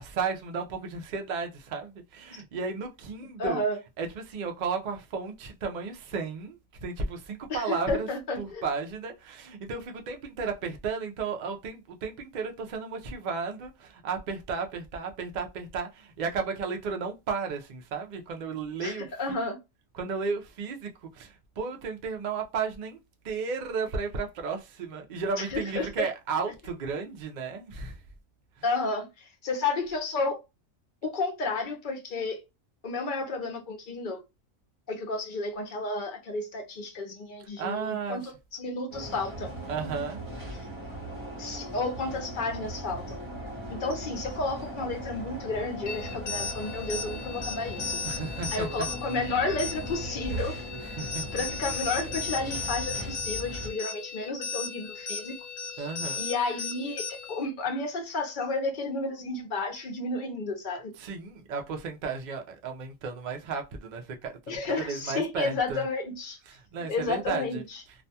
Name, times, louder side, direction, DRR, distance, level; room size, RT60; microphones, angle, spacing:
voice 1, 0.0-3.6 4.0-8.1 8.4-19.1 19.9-23.0 23.2-28.0 37.6-38.2 39.7-40.2 48.0-48.7 51.0-51.3 55.8-56.2 61.0-64.3 64.8-65.8 66.7-67.6, right 5 dB, 85° right, 0.4 m, -33 dB
voice 2, 3.4-3.8 7.5-8.7 18.8-19.6 25.4-26.1 28.6-30.4 31.0-32.4 32.8-34.2 34.9-39.5 41.4-43.2 43.7-48.0 48.5-50.5 51.3-55.4 55.7-55.9 56.2-60.9 64.5-66.4 66.9-67.8, left 3 dB, 50° left, 0.6 m, -32 dB
sound 1, 38.9-53.7, right 1 dB, 25° right, 0.8 m, -38 dB
sound 2, 45.9-57.5, left 5 dB, 70° left, 1.0 m, -36 dB
2.5 x 2.2 x 2.6 m
omnidirectional pair, 1.4 m